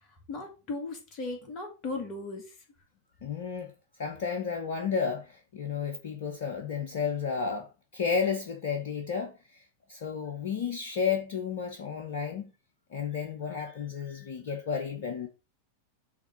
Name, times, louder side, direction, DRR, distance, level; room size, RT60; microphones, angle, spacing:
voice 1, 0.3-2.5, left 3 dB, 35° left, 2.2 m, -37 dB
voice 2, 3.2-3.7 4.0-9.6 9.9-12.5 12.9-15.3, left 6 dB, 55° left, 1.0 m, -32 dB
6.3 x 3.7 x 5.7 m
figure-of-eight pair, 90°, 0 cm